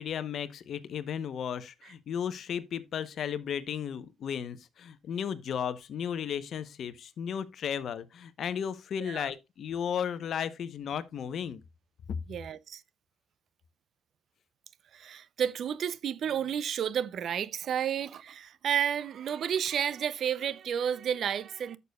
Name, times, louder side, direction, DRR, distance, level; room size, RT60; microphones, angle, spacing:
voice 1, 0.0-11.6, left 8 dB, 65° left, 0.9 m, -34 dB
voice 2, 9.0-9.3 12.3-12.8 14.9-21.8, right 8 dB, 65° right, 0.6 m, -31 dB
11.0 x 6.8 x 2.3 m
cardioid pair, 90°, 0 cm